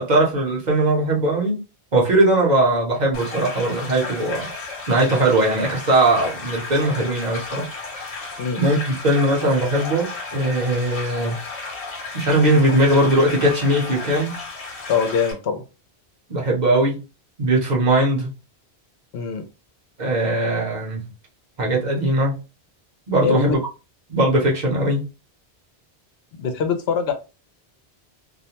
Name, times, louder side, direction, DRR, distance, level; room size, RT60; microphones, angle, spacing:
voice 1, 0.0-1.6 1.9-4.5 4.9-7.7 8.6-11.4 12.1-14.4 16.3-17.0 17.4-18.3 20.0-21.0 21.6-22.4 23.1-23.6 24.1-25.1, right 1 dB, 45° right, 0.8 m, -19 dB
sound 1, 3.1-15.3, left 3 dB, 40° left, 0.7 m, -33 dB
voice 2, 14.9-15.6 19.1-19.4 23.2-23.6 26.4-27.1, left 6 dB, 75° left, 0.8 m, -22 dB
2.4 x 2.1 x 2.8 m
omnidirectional pair, 1.1 m